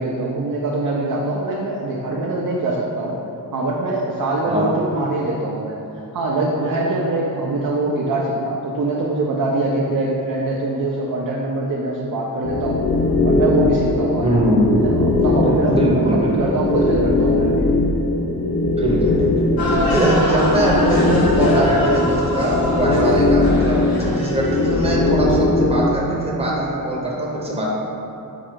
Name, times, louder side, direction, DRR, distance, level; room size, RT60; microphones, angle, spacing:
voice 1, 0.0-3.2 3.5-5.8 6.1-12.8 13.2-14.3 14.8-17.7 20.4-20.5, right 2 dB, 65° right, -3 dB, 0.5 m, -23 dB
sound 1, 12.4-25.8, left 2 dB, 50° left, 0.4 m, -20 dB
voice 2, 14.2-14.6 15.7-16.3 18.8-19.3 19.9-27.7, right 1 dB, 15° right, -5 dB, 0.7 m, -21 dB
sound 2, 19.6-25.2, left 1 dB, 85° left, 0.7 m, -24 dB
4.6 x 2.3 x 4.5 m, 2.8 s
wide cardioid pair, 140°, 35 cm